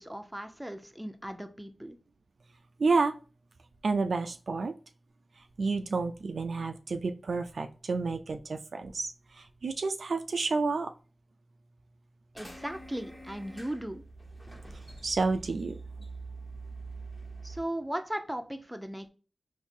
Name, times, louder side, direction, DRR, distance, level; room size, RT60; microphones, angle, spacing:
voice 1, 0.0-2.0 12.3-14.0 17.4-19.1, right 1 dB, 10° right, 6 dB, 0.6 m, -37 dB
voice 2, 2.8-3.1 3.8-4.7 5.4-10.9 15.0-15.7, right 4 dB, 80° right, 6 dB, 0.3 m, -30 dB
sound 1, 12.3-17.6, right 3 dB, 15° left, 1.2 m, -45 dB
3.7 x 2.6 x 2.6 m, 0.35 s
cardioid pair, 50°, 0 cm